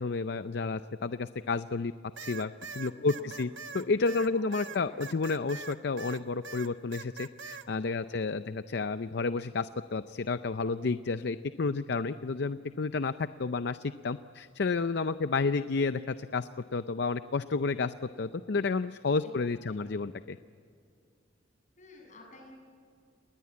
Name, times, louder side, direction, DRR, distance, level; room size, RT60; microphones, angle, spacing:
voice 1, 0.0-1.9 2.2-20.4, left 4 dB, 60° left, 12 dB, 0.5 m, -31 dB
sound 1, 2.2-6.2 6.4-7.7, right 5 dB, 80° right, 1.2 m, -42 dB
voice 2, 2.9-3.4 4.3-5.1 8.0-8.5 19.2-19.9 21.8-22.5, left 1 dB, 40° left, 1 dB, 7.4 m, -53 dB
30.0 x 20.5 x 8.5 m, 2.4 s
head